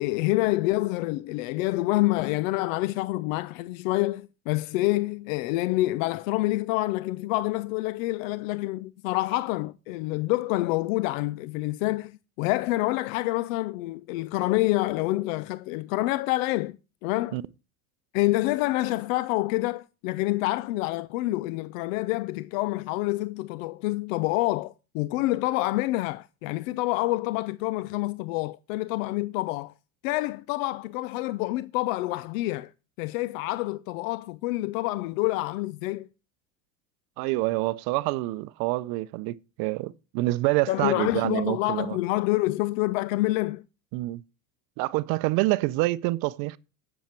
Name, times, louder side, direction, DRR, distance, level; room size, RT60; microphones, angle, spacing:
voice 1, 0.0-17.4 18.1-29.7 30.0-32.7 33.0-36.1 40.7-43.6, left 19 dB, 70° left, 0.6 m, -27 dB
voice 2, 37.2-42.0 43.9-44.2 44.8-46.6, right 19 dB, 60° right, 0.6 m, -27 dB
10.5 x 7.3 x 4.4 m
supercardioid pair, 115°, 41 cm